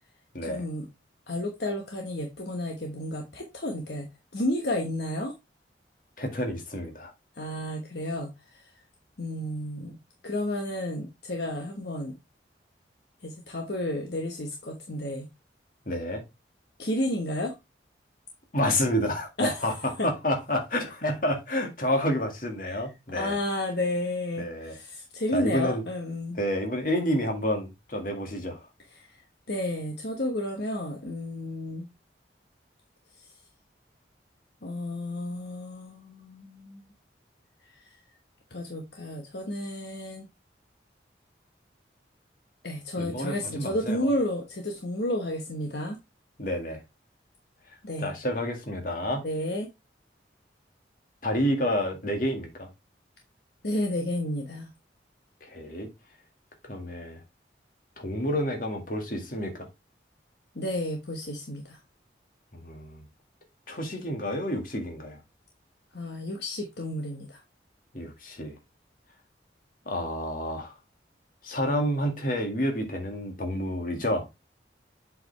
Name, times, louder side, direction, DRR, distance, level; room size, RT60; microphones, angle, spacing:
voice 1, 0.5-0.9 1.3-5.3 7.4-8.6 9.2-10.0 10.2-12.2 13.2-15.3 16.8-17.5 19.4-19.6 20.0-20.1 22.7-22.8 23.1-26.4 28.9-29.0 29.5-31.8 34.6-36.8 38.5-40.2 42.6-46.0 47.8-48.1 49.2-49.7 53.6-54.7 60.5-61.8 65.9-67.4, left 1 dB, 65° left, 1.2 m, -31 dB
voice 2, 6.2-7.1 15.9-16.2 18.5-23.4 24.4-24.8 25.3-25.8 26.4-28.6 43.0-44.1 46.4-46.8 48.0-49.2 51.2-52.7 55.4-55.9 56.7-57.2 58.0-59.7 62.5-63.0 63.7-65.2 67.9-68.5 69.9-70.7 71.4-74.3, equal, 45° left, 1.9 m, -29 dB
7.7 x 5.0 x 3.2 m
head